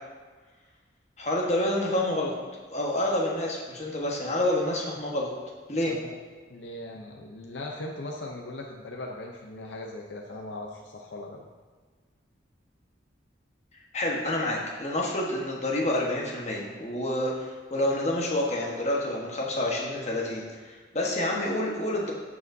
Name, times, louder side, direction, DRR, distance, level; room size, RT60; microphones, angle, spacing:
voice 1, 1.2-2.3 2.7-5.3 5.7-5.9 13.9-22.1, left 1 dB, 35° left, -2 dB, 1.3 m, -28 dB
voice 2, 6.5-11.5, left 2 dB, 70° left, 0 dB, 0.6 m, -39 dB
14.0 x 4.8 x 2.7 m, 1.5 s
head